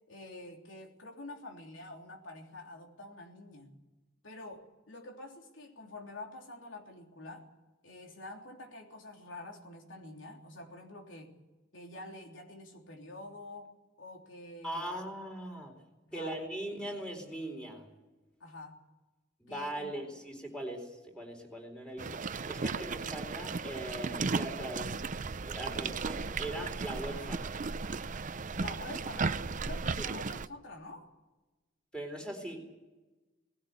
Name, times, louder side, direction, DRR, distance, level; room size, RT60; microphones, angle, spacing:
voice 1, 0.1-3.8 4.2-7.5 7.8-11.3 11.7-13.7 14.0-14.8 16.1-16.4 18.4-18.8 19.5-19.9 28.5-31.1, left 2 dB, 85° left, 2 dB, 3.4 m, -47 dB
voice 2, 14.6-15.7 16.1-17.9 19.4-27.5 30.0-30.1 31.9-32.6, right 1 dB, 5° left, 3 dB, 4.3 m, -40 dB
sound 1, 22.0-30.5, right 4 dB, 45° right, 0.6 m, -35 dB
19.5 x 16.5 x 9.5 m, 1.2 s
head